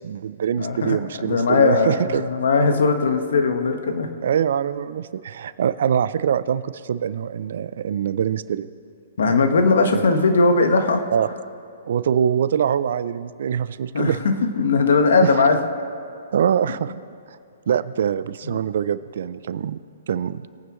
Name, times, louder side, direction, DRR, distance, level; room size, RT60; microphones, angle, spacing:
voice 1, 0.0-2.2 4.2-8.7 9.9-10.0 11.1-11.3 11.9-14.2 15.2-15.5 16.3-16.9 17.3-17.4 17.7-19.8 20.1-20.5, right 8 dB, 65° right, 16 dB, 0.5 m, -23 dB
voice 2, 0.6-1.0 1.2-4.1 9.2-11.0 13.9-15.6 18.5-18.6, left 4 dB, 70° left, 6 dB, 1.4 m, -19 dB
21.5 x 9.3 x 3.1 m, 2.4 s
hypercardioid pair, 130°, 0 cm